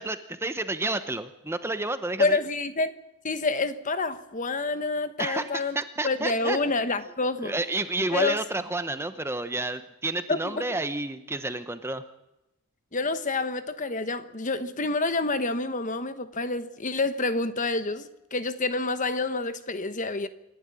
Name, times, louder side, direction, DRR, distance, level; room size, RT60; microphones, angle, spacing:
voice 1, 0.0-2.4 5.2-6.6 7.4-12.0, right 2 dB, 10° right, 0.9 m, -30 dB
voice 2, 2.2-2.9 3.2-5.8 6.0-7.5 8.1-8.4 10.3-10.6 12.9-20.3, left 3 dB, 35° left, 1.2 m, -28 dB
27.5 x 11.5 x 9.8 m
head